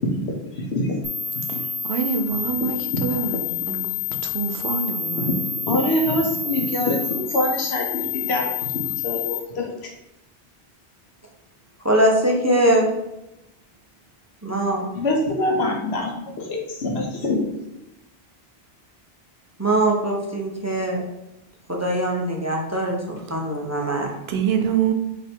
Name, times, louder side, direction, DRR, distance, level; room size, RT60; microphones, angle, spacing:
voice 1, 0.2-0.9 1.5-1.6 2.6-2.7 2.9-3.0 5.2-9.7 14.9-17.5, left 1 dB, 85° left, 1.1 m, -25 dB
sound 1, 1.0-9.4, left 7 dB, 20° left, 0.8 m, -28 dB
voice 2, 1.5-3.9 4.2-5.3 24.3-24.9, right 7 dB, 80° right, 0.8 m, -25 dB
voice 3, 11.8-12.9 14.4-14.8 19.6-21.0 21.7-24.1, right 1 dB, 20° right, 0.4 m, -22 dB
3.3 x 2.7 x 4.3 m
omnidirectional pair, 1.0 m